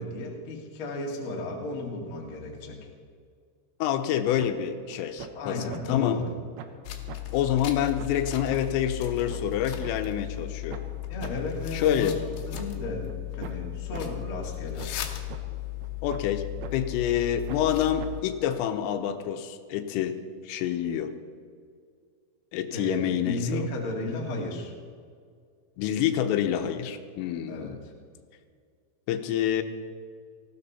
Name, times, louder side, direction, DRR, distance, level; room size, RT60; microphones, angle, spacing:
voice 1, 0.0-2.9 5.3-6.3 11.1-14.9 22.7-24.7 27.5-27.9, left 2 dB, 45° left, 0 dB, 1.7 m, -34 dB
voice 2, 3.8-6.2 7.3-10.8 11.7-12.2 16.0-16.4 16.7-20.2 20.5-21.1 22.5-23.7 25.8-27.8 29.1-29.6, left 10 dB, 90° left, 8 dB, 3.4 m, -27 dB
sound 1, 4.4-4.5 4.9-5.3 5.7-5.8 6.2-6.3 6.6-6.8 7.1-7.2 7.6-7.7 8.0-8.1 8.5-8.6 9.0-9.9 10.3-10.4 10.7-10.9 11.2-11.3 11.7-12.7 13.0-13.1 13.4-13.6 13.9-14.0 14.4-14.5 14.8-15.0 15.3-15.4 15.8-16.4 16.6-16.7 17.1-17.2 17.5-17.7 18.0-18.1 18.5-18.6, right 9 dB, 80° right, 2.3 m, -41 dB
sound 2, 6.9-18.2, left 15 dB, 70° left, 2.8 m, -36 dB
19.0 x 15.5 x 4.2 m, 2.2 s
omnidirectional pair, 5.8 m